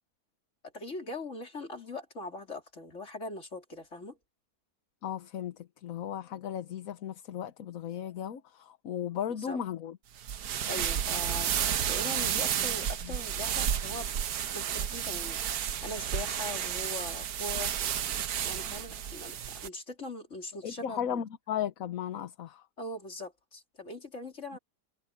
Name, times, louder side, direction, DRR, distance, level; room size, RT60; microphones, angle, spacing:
voice 1, 0.7-4.2 9.4-9.6 10.7-11.5 11.9-14.1 14.5-15.4 15.8-17.7 18.4-21.2 22.8-24.6, left 2 dB, 50° left, 3.7 m, -41 dB
voice 2, 5.0-10.0 12.2-12.7 13.0-13.2 20.6-22.7, left 9 dB, 65° left, 1.3 m, -36 dB
sound 1, 10.2-19.7, right 9 dB, 80° right, 1.4 m, -32 dB
omnidirectional pair, 1.6 m